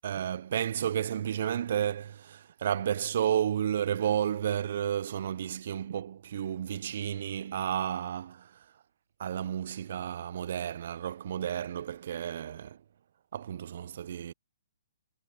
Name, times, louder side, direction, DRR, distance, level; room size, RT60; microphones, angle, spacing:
voice 1, 0.0-8.6 9.2-12.8 13.3-14.3, right 9 dB, 45° right, 0.3 m, -32 dB
hypercardioid pair, 175°, 0 cm